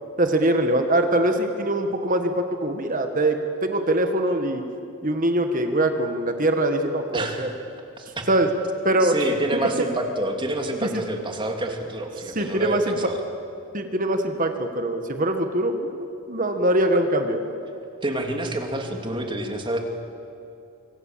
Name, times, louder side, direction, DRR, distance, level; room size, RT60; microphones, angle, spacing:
voice 1, 0.2-4.6 5.0-7.5 8.3-8.5 8.8-9.1 9.5-9.6 10.8-10.9 12.3-12.9 13.7-17.5, right 1 dB, 40° right, 6 dB, 1.7 m, -23 dB
voice 2, 7.1-7.5 8.0-8.3 9.0-13.2 18.0-19.8, right 1 dB, 20° right, 3 dB, 2.8 m, -28 dB
26.0 x 25.5 x 7.6 m, 2.7 s
head